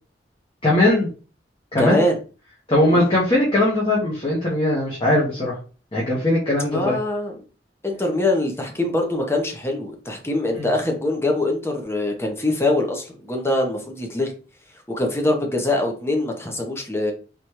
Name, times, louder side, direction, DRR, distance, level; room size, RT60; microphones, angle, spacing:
voice 1, 0.6-1.1 1.7-2.0 2.7-5.5 5.9-7.0 10.6-10.7, left 1 dB, 30° left, -6 dB, 1.3 m, -19 dB
voice 2, 1.8-2.2 2.9-3.1 6.7-7.4 7.8-14.3 14.9-17.1, left 2 dB, 15° left, 2 dB, 0.9 m, -23 dB
4.2 x 3.2 x 3.0 m, 0.36 s
head